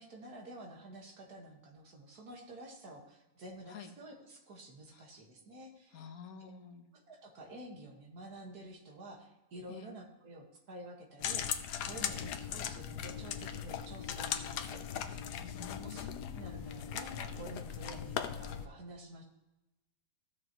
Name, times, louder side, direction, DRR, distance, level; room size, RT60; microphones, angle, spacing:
voice 1, 0.0-6.0 6.4-6.5 6.9-11.4 11.9-14.8 15.3-15.4 15.8-19.2, right 1 dB, 65° right, 1 dB, 2.1 m, -50 dB
voice 2, 5.9-6.9 9.7-9.9 11.9-12.2 15.4-16.4, left 6 dB, 60° left, 5 dB, 1.4 m, -49 dB
sound 1, 11.2-18.7, left 9 dB, 80° left, 1.2 m, -39 dB
15.0 x 6.4 x 3.0 m, 0.98 s
omnidirectional pair, 1.8 m